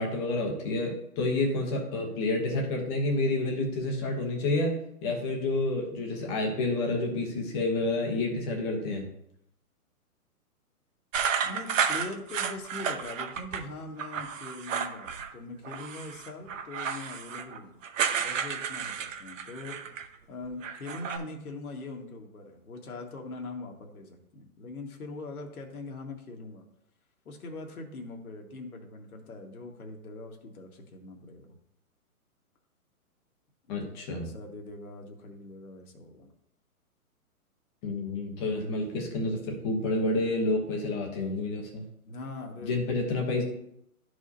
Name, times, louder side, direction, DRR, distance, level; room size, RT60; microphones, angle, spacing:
voice 1, 0.0-9.1 33.7-34.3 37.8-41.8 42.6-43.4, left 2 dB, 20° left, 1 dB, 1.0 m, -29 dB
sound 1, 11.1-13.6 14.0-15.3 15.6-20.1 20.4-21.2, right 7 dB, 55° right, 0.9 m, -32 dB
voice 2, 11.4-17.8 18.2-19.9 20.3-26.6 27.3-31.6 33.7-36.3 42.1-42.8, left 2 dB, 75° left, 2 dB, 1.8 m, -42 dB
12.5 x 4.9 x 2.8 m, 0.76 s
hypercardioid pair, 160°, 45 cm